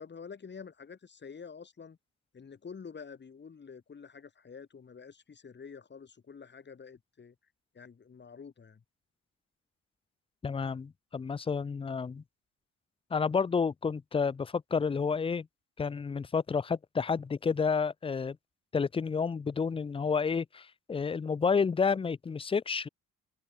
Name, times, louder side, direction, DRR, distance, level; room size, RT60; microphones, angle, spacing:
voice 1, 0.0-2.0 2.3-7.3 7.7-8.8, left 6 dB, 35° left, 2.5 m, -48 dB
voice 2, 10.4-12.2 13.1-15.5 15.8-18.4 18.7-22.9, left 5 dB, 20° left, 0.4 m, -30 dB
open air
cardioid pair, 90°, 30 cm